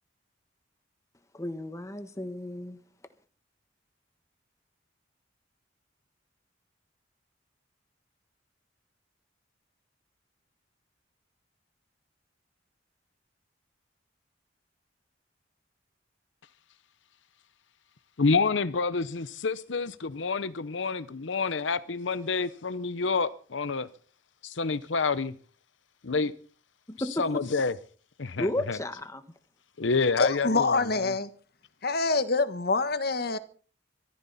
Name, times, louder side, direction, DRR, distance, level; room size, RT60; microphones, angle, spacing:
voice 1, 1.3-2.8 26.9-27.3 28.4-29.2, left 1 dB, 15° left, 1.4 m, -33 dB
voice 2, 18.2-23.9 24.4-25.3 26.0-26.3 27.2-27.7 28.2-28.8 29.8-31.1, left 4 dB, 75° left, 0.8 m, -28 dB
voice 3, 30.2-31.3 31.8-33.4, left 3 dB, 55° left, 1.4 m, -26 dB
22.5 x 14.5 x 4.2 m
head